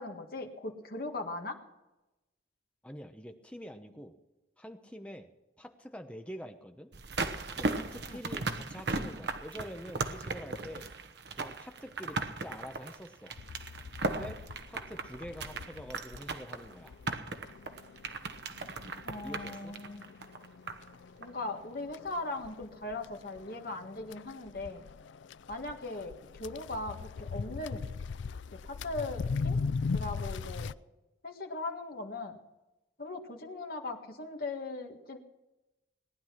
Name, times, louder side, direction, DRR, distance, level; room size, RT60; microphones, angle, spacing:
voice 1, 0.0-1.6 8.1-8.2 19.0-20.0 21.2-24.8 25.5-27.8 28.5-29.6 29.9-30.7 31.2-32.4 33.0-35.2, left 2 dB, 50° left, 2 dB, 1.8 m, -39 dB
voice 2, 2.8-4.1 4.6-5.3 5.6-6.9 7.6-10.9 11.3-13.3 14.0-16.9 19.2-19.7, equal, 5° left, 5 dB, 1.0 m, -46 dB
sound 1, 6.9-20.9 21.2-21.3, right 3 dB, 60° right, 1.1 m, -37 dB
sound 2, 13.4-30.7, left 4 dB, 75° left, 0.4 m, -40 dB
19.0 x 10.5 x 6.0 m, 1.0 s
head